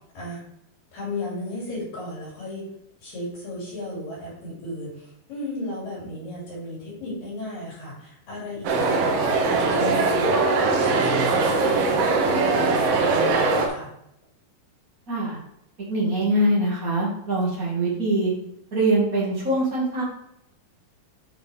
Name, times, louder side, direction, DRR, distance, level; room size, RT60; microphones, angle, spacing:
voice 1, 0.9-2.6 3.0-13.9, left 1 dB, 65° left, -7 dB, 4.6 m, -34 dB
sound 1, 8.6-13.7, right 3 dB, 75° right, 2.6 m, -21 dB
voice 2, 15.9-18.3 18.7-20.0, right 1 dB, 35° right, -6 dB, 1.5 m, -23 dB
8.8 x 5.0 x 3.4 m, 0.77 s
omnidirectional pair, 4.3 m